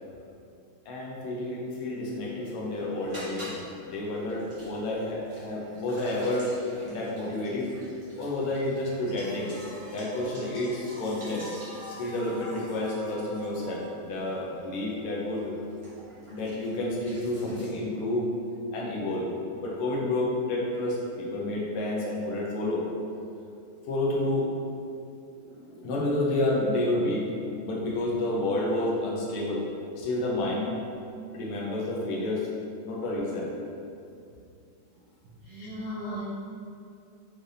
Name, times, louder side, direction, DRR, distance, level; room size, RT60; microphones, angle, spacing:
voice 1, 0.9-6.5 6.8-7.7 8.2-9.6 9.9-11.5 11.9-15.6 16.3-18.3 18.7-19.3 19.6-22.9 23.9-24.5 25.4-27.2 27.6-29.6 30.0-30.8 31.3-32.5 32.8-33.5 35.6-36.2, left 1 dB, 80° left, -4 dB, 1.6 m, -30 dB
sound 1, 2.3-17.7, equal, 45° right, 0.4 m, -47 dB
voice 2, 35.4-36.2, equal, 65° right, -10 dB, 0.9 m, -37 dB
5.1 x 3.3 x 2.6 m, 2.5 s
omnidirectional pair, 2.4 m